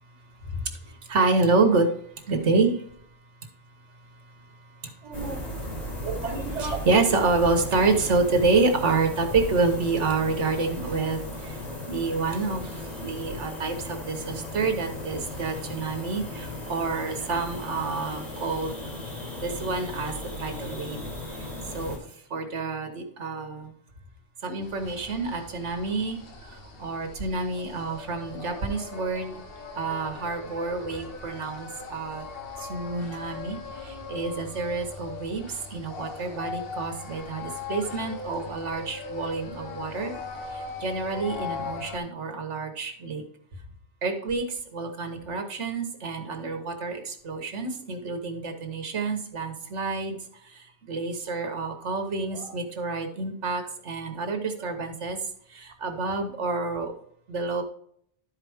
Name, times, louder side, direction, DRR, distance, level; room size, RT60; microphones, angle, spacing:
voice 1, 0.4-1.9 2.3-2.8 4.8-18.8 19.4-20.1 20.4-21.0 21.3-22.0 22.3-23.7 24.4-29.3 29.7-32.3 32.6-40.1 40.5-43.2 44.0-55.2 55.5-56.9 57.3-57.6, right 3 dB, 85° right, 5 dB, 1.5 m, -28 dB
sound 1, 5.1-22.0, left 1 dB, 35° left, 3.3 m, -36 dB
sound 2, 24.6-42.0, left 4 dB, 55° left, 1.3 m, -39 dB
12.0 x 4.9 x 3.5 m, 0.66 s
omnidirectional pair, 1.2 m